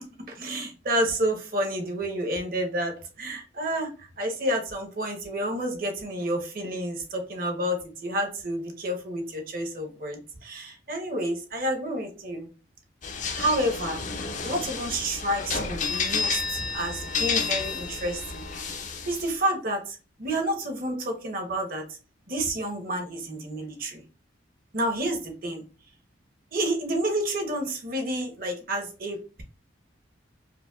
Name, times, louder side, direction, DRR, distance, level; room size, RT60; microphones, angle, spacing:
voice 1, 0.3-12.5 13.4-14.0 14.4-21.8 22.3-24.0 24.7-25.6 26.5-29.4, right 1 dB, 50° right, 4 dB, 0.9 m, -30 dB
sound 1, 13.0-19.3, left 5 dB, 40° left, 0.5 m, -31 dB
4.9 x 2.2 x 2.3 m, 0.34 s
head